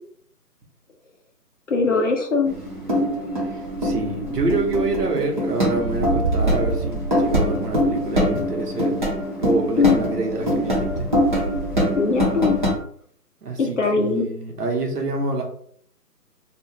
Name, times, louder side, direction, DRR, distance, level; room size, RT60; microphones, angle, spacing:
voice 1, 1.7-2.6 9.8-10.0 11.9-12.6 13.6-14.2, left 4 dB, 50° left, 2 dB, 0.5 m, -20 dB
sound 1, 2.4-12.7, equal, 30° right, 0.7 m, -23 dB
voice 2, 3.8-9.0 9.4-10.7 13.4-15.4, right 3 dB, 70° right, 1 dB, 0.9 m, -26 dB
2.4 x 2.3 x 2.9 m, 0.62 s
figure-of-eight pair, 160°, 48 cm